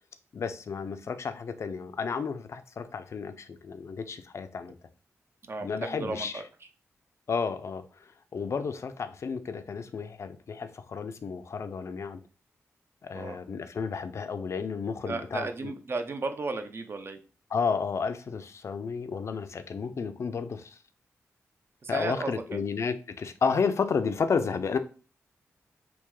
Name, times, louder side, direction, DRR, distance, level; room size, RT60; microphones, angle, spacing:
voice 1, 0.3-4.8 5.6-6.3 7.3-7.8 8.3-12.2 13.0-15.7 17.5-20.8 21.9-24.8, left 5 dB, 60° left, 0.4 m, -32 dB
voice 2, 5.5-6.4 13.1-13.4 15.1-17.2 21.8-22.6 23.4-23.6, right 3 dB, 50° right, 0.5 m, -34 dB
3.4 x 2.2 x 3.1 m
cardioid pair, 70°, 5 cm